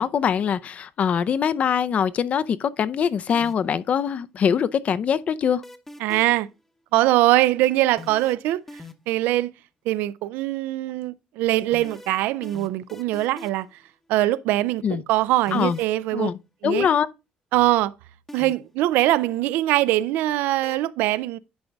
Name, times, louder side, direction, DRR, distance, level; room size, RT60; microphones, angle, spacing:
voice 1, 0.0-5.6 14.8-15.0 15.5-15.8 16.1-16.4 16.6-17.1, left 7 dB, 50° left, 0.5 m, -23 dB
sound 1, 3.3-3.8 5.6-6.5 8.0-9.2 11.7-13.7 15.5-16.0 18.3-18.8 20.6-20.8, left 2 dB, 10° left, 0.8 m, -41 dB
voice 2, 6.0-6.5 6.9-9.5 9.9-13.7 14.1-16.3 16.6-16.9 17.5-17.9 18.3-21.4, right 16 dB, 85° right, 0.4 m, -22 dB
10.5 x 3.9 x 3.5 m
cardioid pair, 105°, 3 cm